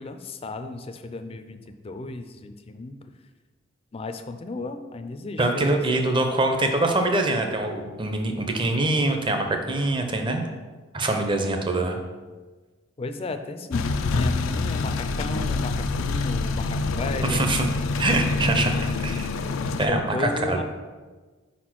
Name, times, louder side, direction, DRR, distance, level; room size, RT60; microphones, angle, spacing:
voice 1, 0.0-3.0 3.9-5.8 13.0-17.5 18.8-18.9 19.4-20.6, left 2 dB, 30° left, 8 dB, 0.4 m, -34 dB
voice 2, 5.4-10.4 10.9-12.0 17.2-17.7 18.0-19.3 19.8-20.6, right 2 dB, 25° right, 4 dB, 0.6 m, -24 dB
sound 1, 13.7-19.9, left 3 dB, 85° left, 0.4 m, -26 dB
5.0 x 4.3 x 6.0 m, 1.3 s
head